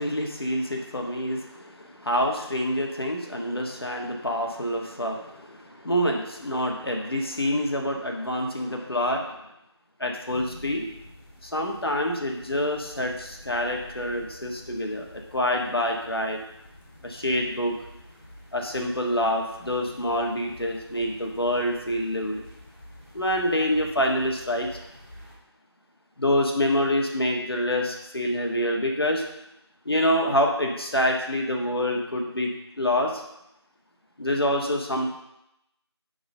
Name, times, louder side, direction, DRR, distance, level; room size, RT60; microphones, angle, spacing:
voice 1, 0.0-9.4 10.0-10.9 11.4-16.4 17.0-17.7 18.5-22.5 23.1-24.7 26.2-29.2 29.8-32.5 32.8-33.2 34.2-35.1, left 1 dB, 60° left, 1 dB, 1.4 m, -26 dB
sound 1, 10.2-25.3, left 1 dB, 20° left, 2.6 m, -48 dB
7.9 x 3.9 x 5.4 m, 0.86 s
figure-of-eight pair, 175°, 14 cm